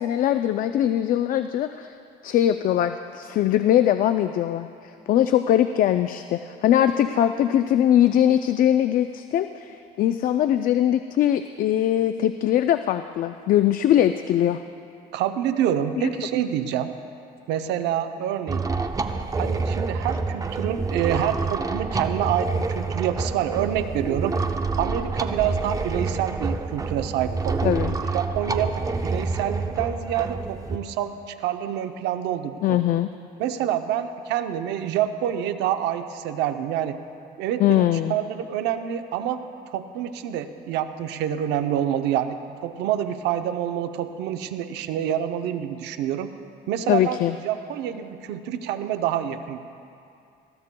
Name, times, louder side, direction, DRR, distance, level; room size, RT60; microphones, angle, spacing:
voice 1, 0.0-1.9 2.2-14.6 27.6-28.0 32.6-33.1 37.6-38.2 46.9-47.3, left 11 dB, 55° left, 10 dB, 0.4 m, -21 dB
voice 2, 15.1-16.9 17.5-18.6 19.4-24.4 24.8-27.8 28.1-28.7 29.0-32.8 33.4-37.0 37.4-39.4 39.7-46.3 46.7-49.6, right 10 dB, 85° right, 8 dB, 0.6 m, -27 dB
sound 1, 18.5-30.8, right 4 dB, 20° right, 0.6 m, -27 dB
20.0 x 15.0 x 2.2 m, 2.5 s
cardioid pair, 110°, 17 cm